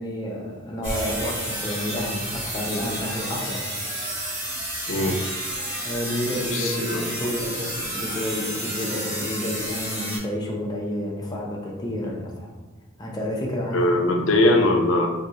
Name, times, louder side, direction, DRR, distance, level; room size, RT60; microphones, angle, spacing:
voice 1, 0.0-3.7 5.8-12.5 13.0-13.9, equal, 20° left, -2 dB, 0.6 m, -30 dB
sound 1, 0.8-10.2, equal, 10° right, 1.2 m, -31 dB
voice 2, 4.9-5.2 6.5-7.0 13.7-15.1, left 1 dB, 70° left, 3 dB, 0.5 m, -21 dB
2.7 x 2.4 x 4.1 m, 1.3 s
head